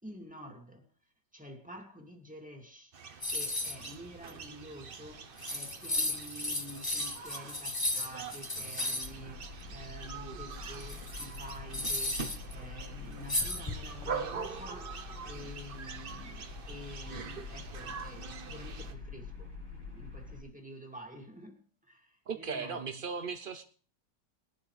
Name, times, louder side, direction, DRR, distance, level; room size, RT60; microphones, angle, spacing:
voice 1, 0.0-0.8 1.3-2.9 3.3-23.0, equal, 5° right, 2 dB, 2.2 m, -49 dB
sound 1, 2.9-18.9, right 6 dB, 45° right, 0.7 m, -44 dB
sound 2, 3.2-3.9 4.3-4.4 5.1-5.2 5.4-9.1 10.6-12.5 13.3-14.1, left 2 dB, 15° left, 1.1 m, -34 dB
sound 3, 9.0-20.4, left 4 dB, 70° left, 6.4 m, -46 dB
voice 2, 22.3-23.6, right 5 dB, 80° right, 7 dB, 0.4 m, -37 dB
20.5 x 11.5 x 3.3 m, 0.43 s
omnidirectional pair, 1.9 m